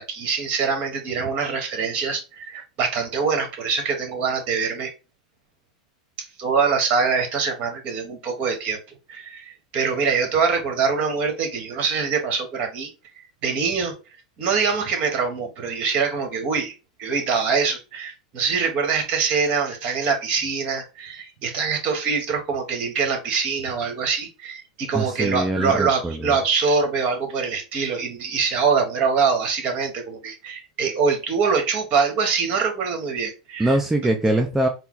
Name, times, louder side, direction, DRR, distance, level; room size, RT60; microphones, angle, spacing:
voice 1, 0.0-4.9 6.4-8.8 9.1-12.9 13.4-13.9 14.4-33.7, right 5 dB, 45° right, 4 dB, 1.5 m, -24 dB
voice 2, 24.9-26.4 33.6-34.7, right 1 dB, 10° right, 3 dB, 0.5 m, -22 dB
4.2 x 2.0 x 3.9 m, 0.29 s
hypercardioid pair, 115°, 4 cm